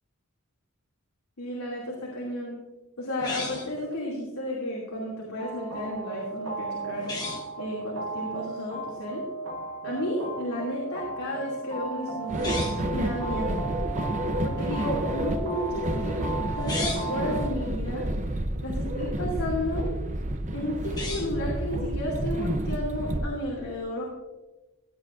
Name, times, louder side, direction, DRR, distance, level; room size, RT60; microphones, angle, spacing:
voice 1, 1.4-2.6 3.0-7.1 7.6-9.2 9.8-12.6 12.9-13.6 14.4-16.2 16.6-18.1 18.6-19.9 20.5-24.0, left 1 dB, 75° left, -4 dB, 2.6 m, -32 dB
sound 1, 3.2-3.8 7.0-7.5 12.3-12.9 16.5-17.2 20.8-21.5, left 3 dB, 20° left, 1.3 m, -35 dB
sound 2, 5.4-17.5, right 3 dB, 85° right, 1.4 m, -36 dB
sound 3, 12.3-23.3, right 1 dB, 35° right, 0.7 m, -30 dB
16.5 x 9.3 x 2.6 m, 1.1 s
head